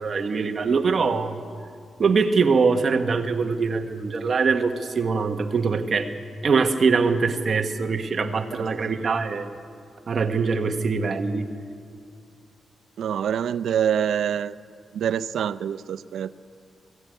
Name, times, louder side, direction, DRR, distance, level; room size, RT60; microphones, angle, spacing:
voice 1, 0.0-1.4 2.0-6.1 6.4-9.5 10.1-11.5, right 5 dB, 40° right, 6 dB, 1.2 m, -23 dB
voice 2, 13.0-14.6 14.9-16.4, right 9 dB, 85° right, 13 dB, 0.5 m, -26 dB
20.5 x 16.0 x 9.2 m, 2.3 s
wide cardioid pair, 170°, 0 cm